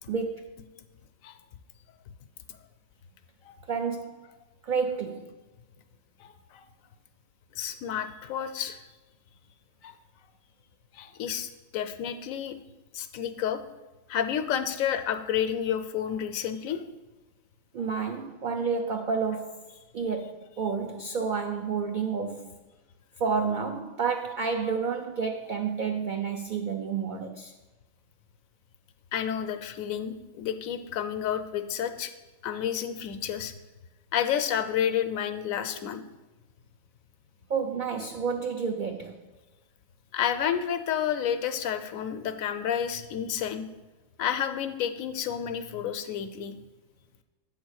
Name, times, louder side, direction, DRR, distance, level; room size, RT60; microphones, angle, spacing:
voice 1, 0.1-0.5 3.7-4.3 4.6-5.3 17.7-19.7 19.9-22.6 23.2-27.5 37.5-39.2, right 5 dB, 80° right, 0.4 m, -30 dB
voice 2, 6.2-6.6 7.5-8.8 9.8-9.9 10.9-12.6 12.9-13.6 14.1-16.8 29.1-32.1 32.4-33.5 34.1-36.0 40.1-43.7 44.2-46.5, left 9 dB, 85° left, 1.0 m, -30 dB
8.0 x 3.7 x 6.3 m
omnidirectional pair, 1.4 m